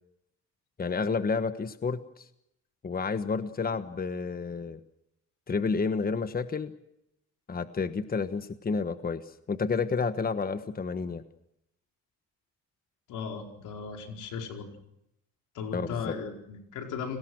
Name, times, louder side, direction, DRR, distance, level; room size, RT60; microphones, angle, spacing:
voice 1, 0.8-2.3 2.8-4.8 5.5-6.7 7.5-9.2 9.5-11.2 15.7-16.1, left 4 dB, 30° left, 11 dB, 1.3 m, -30 dB
voice 2, 13.1-14.7 15.5-17.2, left 5 dB, 90° left, 3 dB, 4.8 m, -36 dB
29.5 x 20.0 x 6.3 m, 0.81 s
cardioid pair, 90°, 30 cm